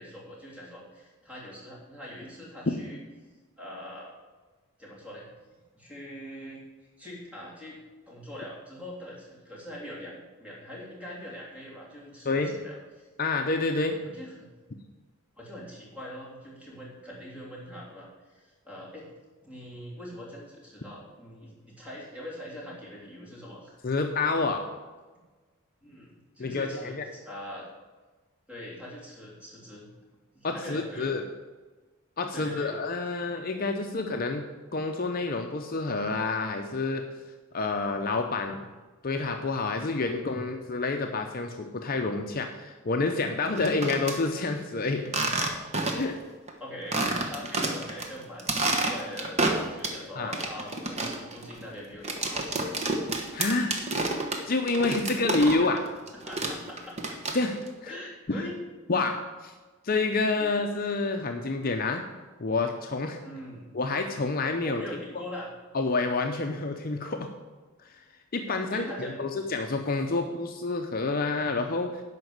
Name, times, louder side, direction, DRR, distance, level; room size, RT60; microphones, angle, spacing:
voice 1, 0.0-3.0 3.6-4.1 4.8-5.2 5.7-7.8 8.1-13.1 14.0-14.5 15.4-19.1 19.4-23.8 25.8-27.7 28.5-29.9 30.3-31.1 32.3-32.7 38.6-38.7 45.2-45.5 46.6-52.7 55.2-55.8 56.2-57.0 57.9-58.6 60.4-60.5 61.6-61.7 63.2-63.6 64.6-65.5 68.4-69.3, left 1 dB, 5° right, -5 dB, 3.0 m, -42 dB
voice 2, 13.2-14.0 23.8-24.7 26.4-27.1 30.4-31.2 32.2-34.4 34.7-37.1 37.5-38.6 39.0-45.1 46.0-46.2 50.2-50.3 53.3-53.7 54.4-55.8 57.3-57.5 57.8-57.9 58.3-58.5 58.9-59.5 59.8-62.0 62.4-63.2 63.7-64.8 65.7-67.3 67.8-68.0 68.3-72.0, left 3 dB, 45° left, 4 dB, 0.6 m, -28 dB
sound 1, 43.5-44.2 45.0-46.2 46.5-46.6 46.9-48.1 48.4-50.0 50.3-55.8 56.1-57.7, right 2 dB, 30° right, 1.2 m, -29 dB
11.0 x 5.3 x 7.9 m, 1.3 s
head